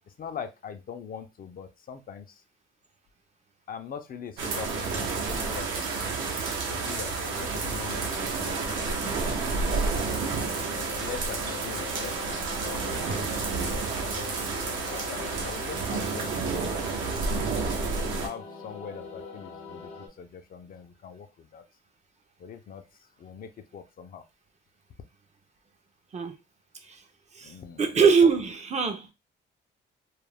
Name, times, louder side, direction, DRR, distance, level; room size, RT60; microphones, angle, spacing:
voice 1, 0.2-2.3 3.7-10.3 11.0-13.6 14.7-17.6 18.0-19.9 20.2-21.6 22.4-22.8 23.2-24.2 27.4-27.8, left 7 dB, 45° left, 0.5 m, -42 dB
sound 1, 4.4-18.3, right 4 dB, 80° right, 0.7 m, -30 dB
sound 2, 6.7-20.1, left 5 dB, 80° left, 0.7 m, -43 dB
voice 2, 27.3-29.1, right 5 dB, 35° right, 0.5 m, -23 dB
2.3 x 2.1 x 3.3 m
cardioid pair, 90°, 20 cm